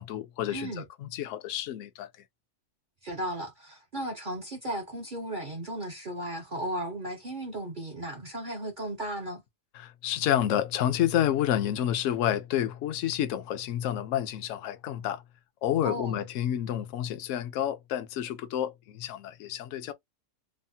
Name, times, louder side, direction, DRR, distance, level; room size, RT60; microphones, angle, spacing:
voice 1, 0.0-2.1 9.7-15.2 15.6-19.9, left 11 dB, 65° left, 0.8 m, -29 dB
voice 2, 0.5-0.8 3.0-9.4 15.8-16.2, right 1 dB, 55° right, 0.5 m, -35 dB
3.2 x 2.1 x 2.6 m
omnidirectional pair, 1.7 m